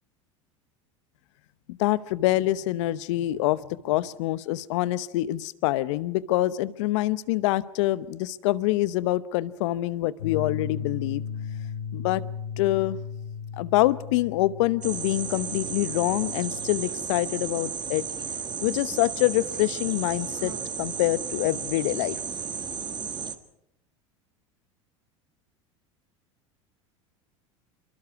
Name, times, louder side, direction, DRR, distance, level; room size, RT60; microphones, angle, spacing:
voice 1, 1.8-3.6 3.8-11.2 11.9-12.2 12.6-13.0 13.6-18.0 18.6-22.2, left 16 dB, 65° left, 17 dB, 0.9 m, -25 dB
sound 1, 10.2-16.8, left 7 dB, 80° left, 6.5 m, -36 dB
sound 2, 14.8-23.3, right 6 dB, 25° right, 1.5 m, -34 dB
25.5 x 23.5 x 4.8 m, 0.80 s
hypercardioid pair, 85°, 17 cm